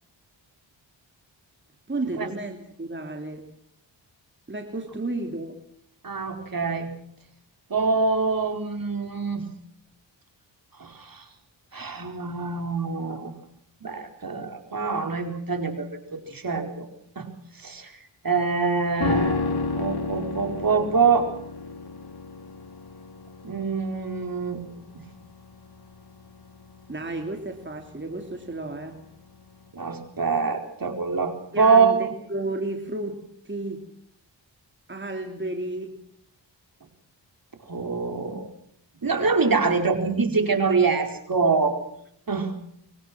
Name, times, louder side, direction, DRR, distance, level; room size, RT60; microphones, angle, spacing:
voice 1, 1.9-3.5 4.5-5.6 26.9-29.0 31.5-33.9 34.9-36.0, right 2 dB, 25° right, 3 dB, 3.2 m, -32 dB
voice 2, 6.0-6.9 7.7-9.5 10.8-11.2 11.7-13.3 13.8-16.9 17.2-18.0 18.2-21.3 23.4-24.6 24.9-25.1 29.7-32.1 37.7-38.5 39.0-41.8 42.3-42.5, right 4 dB, 45° right, 4 dB, 4.6 m, -25 dB
sound 1, 19.0-28.4 28.7-28.8, left 4 dB, 55° left, 3.3 m, -32 dB
25.0 x 24.0 x 6.1 m, 0.70 s
cardioid pair, 70°, 45 cm